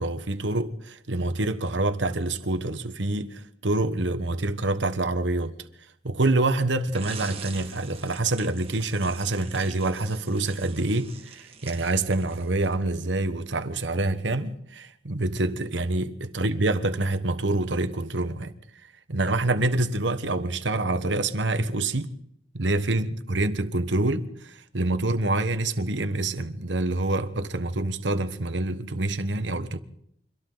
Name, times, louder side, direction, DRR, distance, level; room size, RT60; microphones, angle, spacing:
voice 1, 0.0-5.5 6.0-18.5 19.1-22.1 22.5-29.8, right 2 dB, 80° right, 1.3 m, -26 dB
sound 1, 6.9-12.8, right 5 dB, 35° right, 1.8 m, -44 dB
29.5 x 24.5 x 4.0 m
head